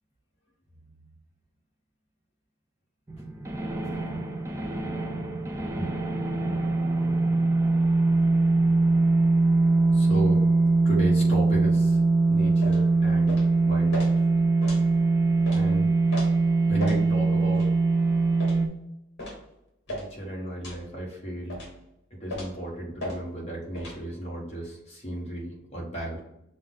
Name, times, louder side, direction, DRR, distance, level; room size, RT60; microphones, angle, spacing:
sound 1, 3.1-18.7, right 3 dB, 15° right, 0.3 m, -22 dB
voice 1, 5.3-5.9 6.4-6.5 7.0-7.2 9.9-10.4 10.8-12.0 12.3-14.1 15.5-15.9 16.7-17.7 19.9-21.6 22.1-26.2, right 1 dB, 30° left, -4 dB, 1.3 m, -34 dB
sound 2, 12.6-12.8 13.3-13.5 13.9-14.1 14.6-14.8 15.5-15.6 16.1-16.3 16.8-17.0 17.5-17.7 18.4-18.6 19.2-19.4 19.9-20.1 20.6-20.8 21.5-21.7 22.3-22.6 23.0-23.2 23.7-24.0, left 1 dB, 50° left, 1.6 m, -35 dB
6.2 x 2.1 x 3.8 m, 0.84 s
head